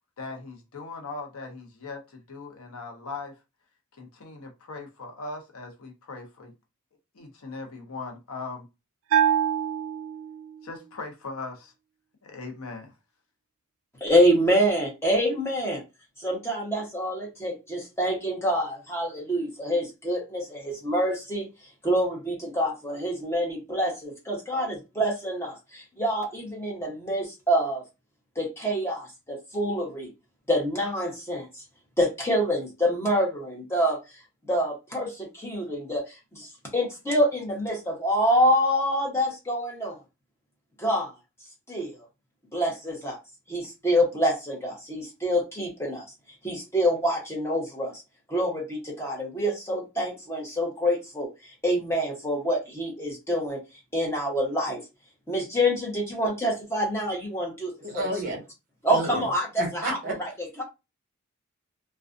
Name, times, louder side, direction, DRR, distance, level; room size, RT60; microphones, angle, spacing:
voice 1, 0.2-3.4 4.0-6.5 7.1-8.7 10.6-11.7 12.2-12.9, left 3 dB, 80° left, 0.7 m, -39 dB
Bell, 9.1-10.7, right 9 dB, 70° right, 0.4 m, -25 dB
voice 2, 14.0-15.8 16.2-21.5 21.8-27.8 28.4-30.1 30.5-31.6 32.0-34.0 34.5-40.0 40.8-41.1 41.7-42.0 42.5-43.2 43.5-46.0 46.4-48.0 48.3-53.6 53.9-54.8 55.3-58.1 58.8-60.6, equal, 10° left, 0.8 m, -26 dB
voice 3, 57.8-58.4 58.9-59.2 59.6-60.1, right 2 dB, 40° right, 0.8 m, -30 dB
2.4 x 2.2 x 2.5 m
head